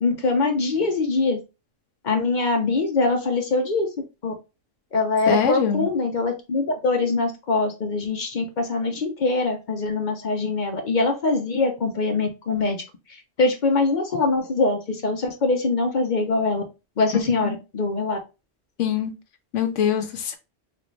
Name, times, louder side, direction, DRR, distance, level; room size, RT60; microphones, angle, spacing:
voice 1, 0.0-1.4 2.0-3.9 4.2-4.3 4.9-12.8 13.4-16.6 17.0-18.2, left 3 dB, 50° left, 0.7 m, -23 dB
voice 2, 5.3-5.9 17.1-17.6 18.8-19.1 19.5-20.4, left 7 dB, 75° left, 1.0 m, -23 dB
3.6 x 2.6 x 3.0 m
omnidirectional pair, 1.3 m